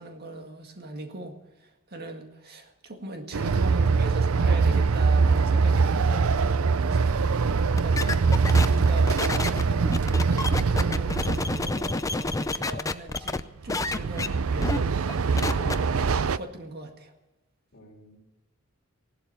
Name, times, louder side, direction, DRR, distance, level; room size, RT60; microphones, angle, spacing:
voice 1, 0.0-6.3 6.8-8.2 8.7-10.0 10.5-14.9 15.3-17.1, right 2 dB, 45° right, 4 dB, 1.9 m, -39 dB
Train, 3.3-11.8 13.6-16.4, right 4 dB, 70° right, 0.5 m, -23 dB
sound 1, 7.7-13.4 13.7-14.3 14.6-14.8 15.1-15.7, left 3 dB, 15° left, 0.5 m, -29 dB
voice 2, 17.7-18.2, left 1 dB, 50° left, 1 dB, 3.9 m, -52 dB
16.5 x 12.0 x 5.6 m, 1.1 s
head